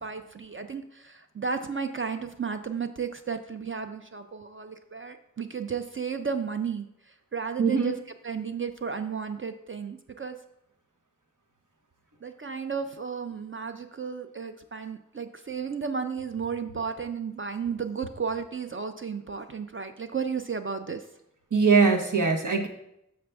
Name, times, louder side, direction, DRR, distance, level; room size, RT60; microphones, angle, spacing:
voice 1, 0.0-6.9 7.3-7.9 8.2-10.4 12.2-21.0, right 6 dB, 40° right, 7 dB, 0.4 m, -33 dB
voice 2, 7.6-7.9 21.5-22.7, right 4 dB, 80° right, 4 dB, 1.0 m, -21 dB
6.7 x 6.6 x 3.4 m, 0.80 s
wide cardioid pair, 50°, 30 cm